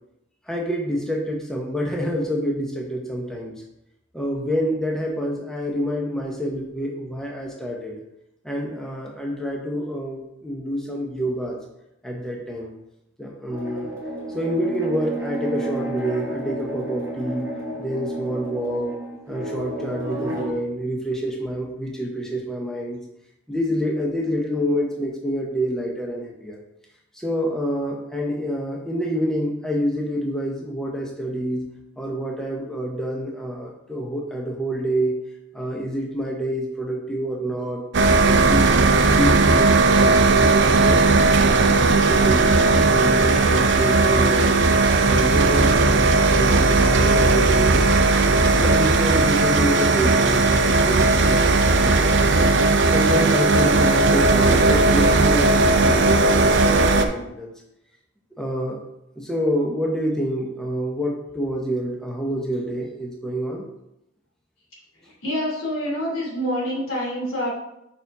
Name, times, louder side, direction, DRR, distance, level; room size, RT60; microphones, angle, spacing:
voice 1, 0.5-3.5 4.1-8.0 8.4-11.6 12.0-12.7 13.2-13.9 14.3-17.5 17.8-19.0 19.3-23.0 23.5-26.6 27.1-31.7 32.0-35.2 35.5-37.8 38.2-42.5 42.9-44.6 45.0-47.8 48.2-52.2 52.8-57.5 58.4-58.8 59.2-63.6, equal, 5° left, -2 dB, 0.9 m, -27 dB
sound 1, 13.5-20.5, right 1 dB, 15° right, 1.5 m, -31 dB
sound 2, 37.9-57.1, right 3 dB, 55° right, 0.5 m, -17 dB
voice 2, 65.2-67.5, equal, 75° left, -4 dB, 2.6 m, -26 dB
5.4 x 5.0 x 4.7 m, 0.84 s
head